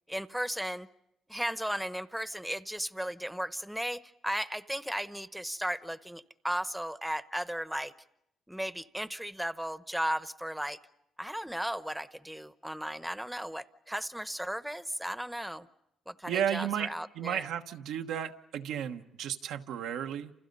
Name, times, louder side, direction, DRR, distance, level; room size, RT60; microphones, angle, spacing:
voice 1, 0.1-0.9 1.3-7.9 8.5-10.8 11.2-15.7 16.1-17.5, equal, 5° right, 13 dB, 0.9 m, -35 dB
voice 2, 16.3-20.3, right 9 dB, 90° right, 4 dB, 1.2 m, -33 dB
29.0 x 28.5 x 5.4 m, 0.80 s
cardioid pair, 90°, 0 cm